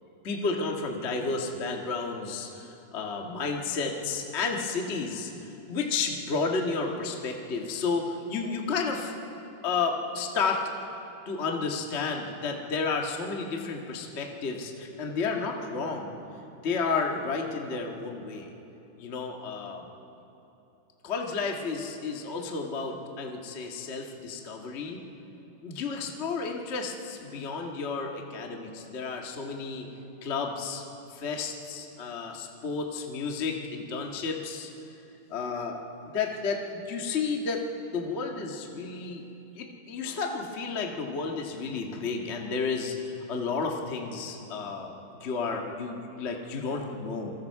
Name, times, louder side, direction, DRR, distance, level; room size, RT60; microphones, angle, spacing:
voice 1, 0.2-5.3 5.7-9.1 9.6-10.6 11.2-16.1 16.6-18.5 19.0-19.9 21.0-25.0 25.6-29.9 30.2-30.8 31.1-34.7 35.3-35.8 36.1-37.6 37.9-39.2 39.6-44.9 45.2-47.3, left 4 dB, 80° left, 1 dB, 0.6 m, -32 dB
28.0 x 22.0 x 4.7 m, 2.9 s
omnidirectional pair, 4.3 m